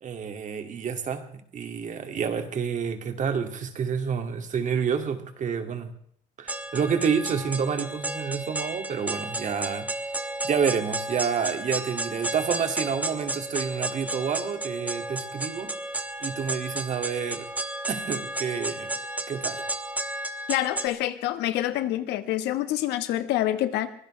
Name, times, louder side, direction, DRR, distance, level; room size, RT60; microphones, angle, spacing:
voice 1, 0.0-5.9 6.4-9.9 10.2-15.7 16.2-17.5 17.9-18.9 19.3-19.6, right 6 dB, 45° right, 6 dB, 2.3 m, -29 dB
sound 1, 6.5-20.9, right 1 dB, 10° right, 1.4 m, -33 dB
voice 2, 20.5-23.9, left 13 dB, 90° left, 11 dB, 1.4 m, -26 dB
24.0 x 16.5 x 3.3 m, 0.65 s
cardioid pair, 110°, 17 cm